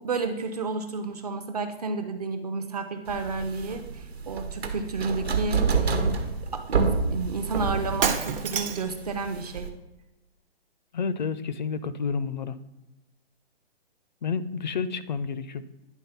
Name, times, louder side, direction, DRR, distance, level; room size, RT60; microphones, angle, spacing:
voice 1, 0.0-6.2 6.5-9.7, right 4 dB, 40° right, 6 dB, 0.6 m, -31 dB
sound 1, 3.1-9.7, right 4 dB, 85° right, 1.3 m, -28 dB
Shatter, 8.0-9.0, right 7 dB, 60° right, 0.9 m, -27 dB
voice 2, 10.9-12.5 14.2-15.6, left 5 dB, 45° left, 14 dB, 0.4 m, -30 dB
10.0 x 3.6 x 5.6 m, 0.97 s
hypercardioid pair, 165°, 31 cm